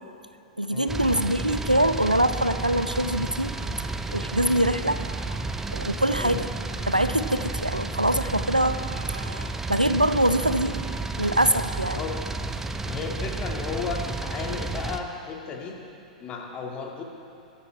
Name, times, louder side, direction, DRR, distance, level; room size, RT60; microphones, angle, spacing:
voice 1, 0.6-5.1 5.7-6.5 6.9-10.8 11.2-12.0, right 1 dB, 90° right, 11 dB, 0.6 m, -24 dB
sound 1, 0.9-15.0, right 3 dB, 10° right, 0.6 m, -32 dB
voice 2, 12.8-15.8 16.2-17.0, left 5 dB, 25° left, 1 dB, 1.9 m, -34 dB
22.5 x 9.6 x 4.7 m, 2.7 s
figure-of-eight pair, 100°, 4 cm